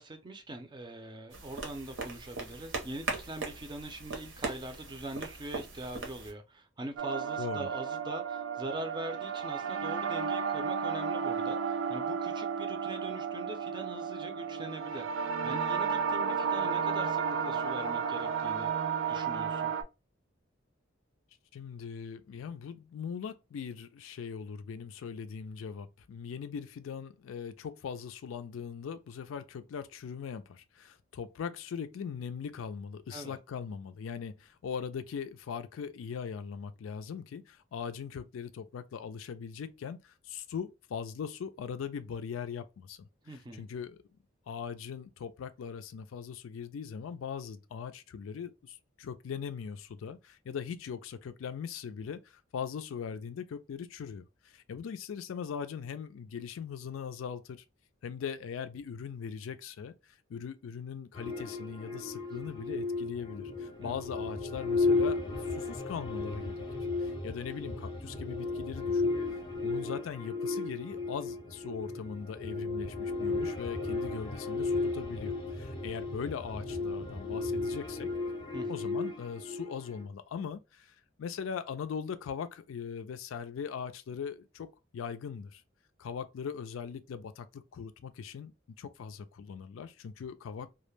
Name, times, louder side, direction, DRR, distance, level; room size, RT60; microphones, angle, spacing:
voice 1, 0.0-18.7 19.1-19.7 33.1-33.4 43.2-43.7 63.8-64.0 78.5-78.7, right 1 dB, 25° right, 0.5 m, -42 dB
sound 1, 1.3-6.3, right 4 dB, 65° right, 0.7 m, -40 dB
sound 2, 7.0-19.8, right 6 dB, 85° right, 0.4 m, -33 dB
voice 2, 7.4-7.7 21.5-44.0 44.5-57.6 58.0-66.7 67.0-69.1 69.6-78.1 78.7-84.7 84.9-85.6 86.0-90.7, left 6 dB, 85° left, 0.3 m, -40 dB
sound 3, 61.1-80.0, left 3 dB, 25° left, 0.6 m, -34 dB
2.2 x 2.1 x 3.1 m
head